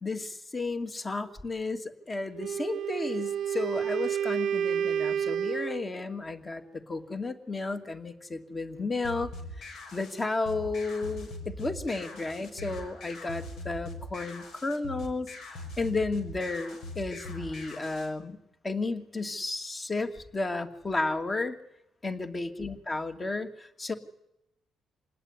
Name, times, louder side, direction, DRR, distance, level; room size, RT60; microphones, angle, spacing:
voice 1, 0.0-9.3 9.6-18.4 18.6-21.6 22.0-23.9, left 3 dB, 25° left, 6 dB, 2.6 m, -33 dB
Wind instrument woodwind instrument, 2.3-5.9, right 9 dB, 65° right, 0.9 m, -30 dB
sound 1, 9.0-18.1, left 1 dB, 75° left, 6.7 m, -42 dB
27.0 x 18.5 x 9.9 m, 0.86 s
cardioid pair, 90°, 0 cm